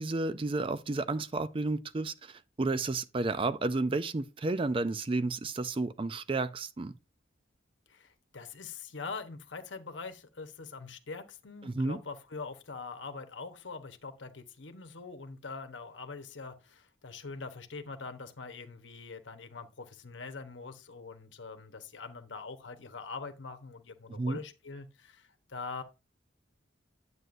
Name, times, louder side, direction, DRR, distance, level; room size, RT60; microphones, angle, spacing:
voice 1, 0.0-6.9 11.6-12.0 24.1-24.4, right 3 dB, 30° right, 0.4 m, -32 dB
voice 2, 7.9-25.8, left 4 dB, 75° left, 1.0 m, -43 dB
9.4 x 7.9 x 2.6 m
head